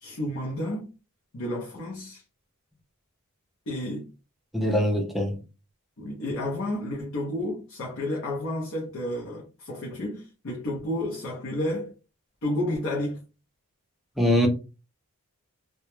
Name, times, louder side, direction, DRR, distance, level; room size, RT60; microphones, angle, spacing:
voice 1, 0.0-0.9 1.3-2.2 3.7-4.1 6.0-11.9 12.4-13.2, left 1 dB, 60° left, 0.6 m, -31 dB
voice 2, 4.5-5.4 14.2-14.5, equal, ahead, 0.4 m, -23 dB
2.3 x 2.0 x 3.0 m
head